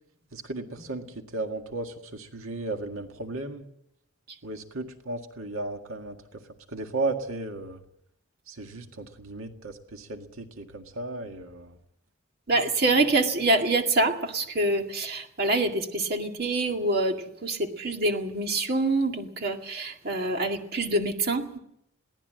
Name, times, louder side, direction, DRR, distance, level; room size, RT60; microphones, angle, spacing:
voice 1, 0.3-3.7 4.4-6.4 6.7-7.8 8.5-11.8, right 2 dB, 85° right, 4 dB, 1.9 m, -35 dB
voice 2, 12.5-21.6, right 2 dB, 45° right, 3 dB, 2.1 m, -26 dB
22.0 x 17.5 x 7.7 m, 0.76 s
head